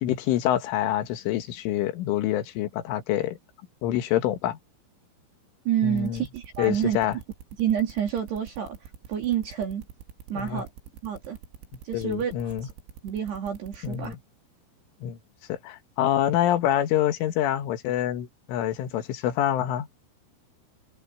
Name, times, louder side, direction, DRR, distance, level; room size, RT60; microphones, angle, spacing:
voice 1, 0.0-3.4 3.8-4.6 5.8-6.2 6.6-7.2 10.4-10.6 11.9-12.7 13.8-14.2 15.0-15.2 15.5-19.9, left 12 dB, 75° left, 4.1 m, -26 dB
voice 2, 5.7-7.0 7.6-9.8 10.3-10.7 11.0-11.4 11.8-12.5 13.0-14.1, right 9 dB, 60° right, 4.6 m, -28 dB
sound 1, 6.0-14.1, right 9 dB, 75° right, 4.4 m, -45 dB
open air
omnidirectional pair, 5.9 m